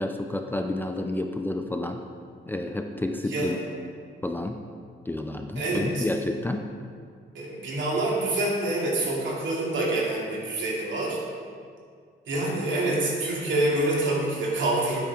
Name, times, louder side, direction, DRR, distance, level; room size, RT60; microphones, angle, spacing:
voice 1, 0.0-2.0 2.5-3.6 4.2-4.6 5.1-6.7, left 2 dB, 10° left, 4 dB, 0.4 m, -30 dB
voice 2, 3.3-3.6 5.6-6.1 7.3-11.2 12.3-15.0, right 2 dB, 70° right, -4 dB, 2.8 m, -26 dB
12.5 x 9.3 x 3.7 m, 2.2 s
wide cardioid pair, 170°, 20 cm